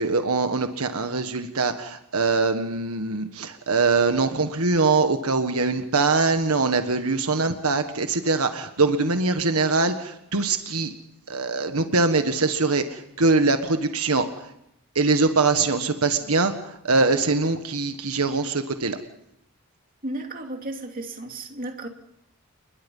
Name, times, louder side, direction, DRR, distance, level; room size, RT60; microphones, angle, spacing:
voice 1, 0.0-10.9 11.3-14.5 14.9-19.0, right 3 dB, 80° right, 7 dB, 1.5 m, -23 dB
voice 2, 20.0-21.9, right 1 dB, 40° right, 3 dB, 2.7 m, -34 dB
29.5 x 22.0 x 5.5 m, 0.80 s
head